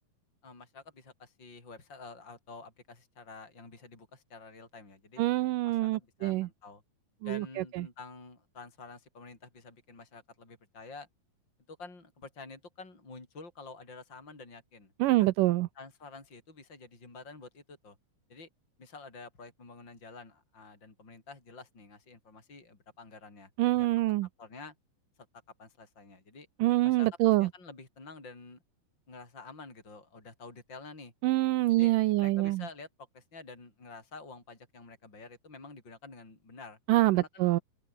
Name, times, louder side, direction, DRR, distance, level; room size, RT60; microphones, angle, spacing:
voice 1, 0.4-5.2 5.6-6.8 7.2-11.1 11.7-14.9 15.2-15.3 15.8-18.0 18.3-18.5 18.8-23.5 23.8-24.7 25.6-26.5 26.8-28.6 29.1-31.1 31.8-31.9 32.2-32.9 33.1-36.8 37.1-37.5, left 3 dB, 30° left, 6.8 m, -49 dB
voice 2, 5.2-6.5 7.2-7.9 15.0-15.7 23.6-24.3 26.6-27.5 31.2-32.6 36.9-37.6, right 18 dB, 80° right, 2.3 m, -26 dB
open air
omnidirectional pair, 4.0 m